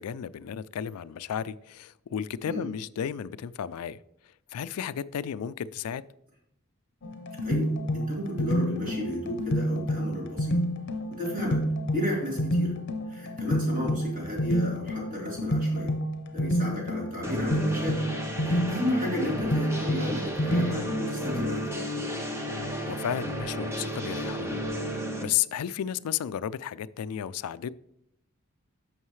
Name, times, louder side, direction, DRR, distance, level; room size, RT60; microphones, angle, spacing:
voice 1, 0.0-4.0 4.2-6.0 11.4-11.5 22.8-24.6 24.9-27.7, left 9 dB, 80° left, 0.3 m, -33 dB
sound 1, 7.0-21.9, equal, 50° left, 0.8 m, -29 dB
voice 2, 7.3-10.6 11.1-11.6 11.9-12.8 13.1-15.9 16.3-18.1 18.4-21.7, left 1 dB, 40° right, 4.0 m, -33 dB
sound 2, 17.2-25.2, equal, 10° right, 1.0 m, -33 dB
11.0 x 7.0 x 3.2 m
head